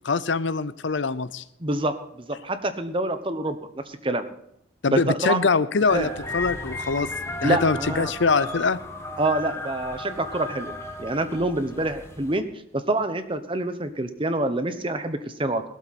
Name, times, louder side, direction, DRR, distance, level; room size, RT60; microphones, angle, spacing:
voice 1, 0.0-1.4 4.8-7.1 7.4-8.8, left 4 dB, 65° left, 15 dB, 0.6 m, -23 dB
voice 2, 1.6-4.3 4.9-5.5 5.9-6.1 7.4-8.1 9.2-10.7 11.0-12.5 12.7-15.6, right 2 dB, 25° right, 10 dB, 1.0 m, -26 dB
sound 1, 5.9-12.4, left 2 dB, 15° left, 1.3 m, -35 dB
17.0 x 12.5 x 4.3 m, 0.73 s
head